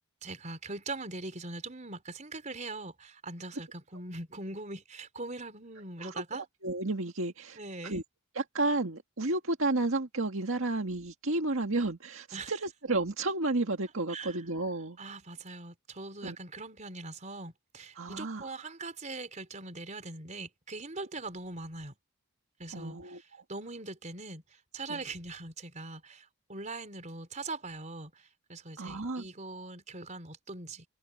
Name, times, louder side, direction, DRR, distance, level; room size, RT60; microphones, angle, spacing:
voice 1, 0.2-6.4 7.6-8.0 12.3-12.5 14.1-14.4 15.0-21.9 22.6-24.4 24.7-30.8, right 3 dB, 35° right, 4.6 m, -41 dB
voice 2, 6.0-8.0 8.4-15.0 16.2-16.4 18.0-18.5 22.7-23.2 24.9-25.0 28.8-29.3, right 2 dB, 65° right, 1.9 m, -32 dB
head